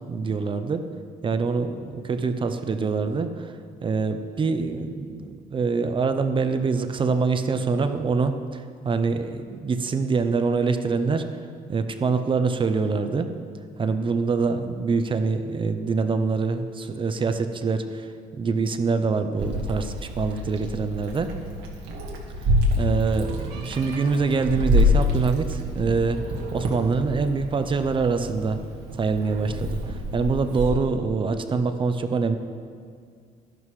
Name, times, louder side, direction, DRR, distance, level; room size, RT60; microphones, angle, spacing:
voice 1, 0.1-0.8 1.2-3.5 3.8-11.2 11.7-13.3 13.8-18.1 18.4-21.3 22.8-26.2 26.5-28.6 29.0-32.4, right 4 dB, 30° right, 8 dB, 0.6 m, -25 dB
Meow, 19.4-30.7, left 1 dB, 90° right, 1.7 m, -27 dB
12.0 x 11.0 x 3.2 m, 2.1 s
cardioid pair, 110°, 17 cm